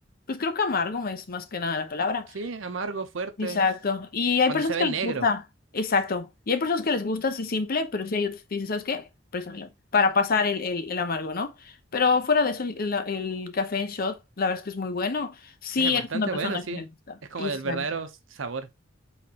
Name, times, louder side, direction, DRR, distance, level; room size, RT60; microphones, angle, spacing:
voice 1, 0.3-2.3 3.4-5.4 5.7-9.1 9.3-16.8 17.4-17.9, left 4 dB, 50° left, 0.7 m, -27 dB
voice 2, 2.3-3.6 4.5-5.3 15.8-16.9 17.3-18.7, right 4 dB, 85° right, 0.8 m, -32 dB
4.3 x 3.9 x 2.8 m
head